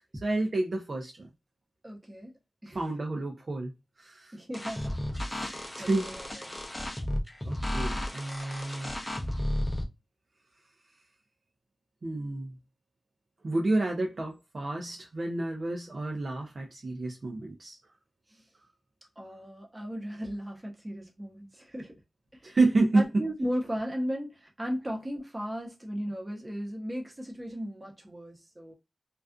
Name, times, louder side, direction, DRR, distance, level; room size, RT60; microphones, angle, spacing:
voice 1, 0.2-1.3 2.7-3.7 4.0-4.3 5.8-6.1 7.4-8.9 12.0-12.6 13.4-17.8 22.4-23.1, right 2 dB, 55° right, 0.5 m, -29 dB
voice 2, 1.8-2.8 4.3-5.0 5.3-6.6 18.3-18.4 19.2-21.9 22.4-22.6 22.9-28.7, equal, 20° right, 0.8 m, -36 dB
sound 1, 4.5-9.8, left 1 dB, 10° left, 0.5 m, -33 dB
2.4 x 2.3 x 2.3 m
wide cardioid pair, 100°, 0 cm